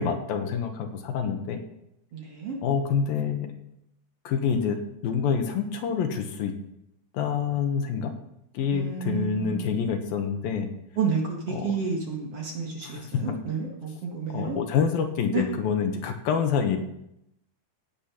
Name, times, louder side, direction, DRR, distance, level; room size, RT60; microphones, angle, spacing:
voice 1, 0.0-1.6 2.6-3.5 4.2-6.5 7.1-8.1 8.5-10.7 11.5-11.8 12.8-13.4 14.3-16.8, left 6 dB, 70° left, 5 dB, 3.0 m, -27 dB
voice 2, 2.1-2.6 8.7-9.8 11.0-14.6 15.3-15.4, right 5 dB, 45° right, 0 dB, 2.3 m, -30 dB
16.5 x 8.8 x 5.9 m, 0.80 s
omnidirectional pair, 4.5 m